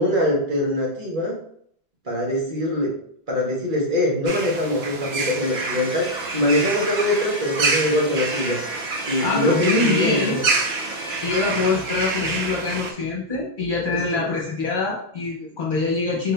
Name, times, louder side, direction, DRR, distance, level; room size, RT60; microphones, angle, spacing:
voice 1, 0.0-1.4 2.0-2.9 3.3-8.6 9.1-10.4 14.1-14.2, left 1 dB, 50° right, -3 dB, 1.3 m, -23 dB
sound 1, 4.3-12.9, right 4 dB, 70° right, 0.9 m, -27 dB
sound 2, 5.4-11.9, right 1 dB, 25° right, 1.0 m, -35 dB
voice 2, 9.2-10.4 11.2-16.3, left 3 dB, 50° left, -4 dB, 1.1 m, -24 dB
4.3 x 2.7 x 3.3 m, 0.65 s
omnidirectional pair, 1.1 m